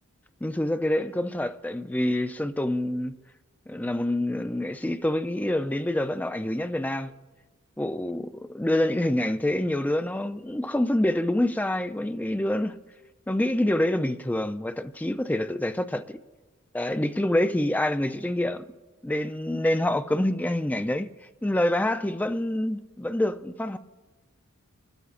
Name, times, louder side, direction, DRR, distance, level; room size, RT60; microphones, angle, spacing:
voice 1, 0.4-3.2 3.7-7.1 7.8-12.8 13.3-16.2 16.7-18.6 19.0-21.1 21.4-23.8, left 1 dB, 5° left, 0.4 m, -26 dB
27.0 x 13.0 x 2.5 m
head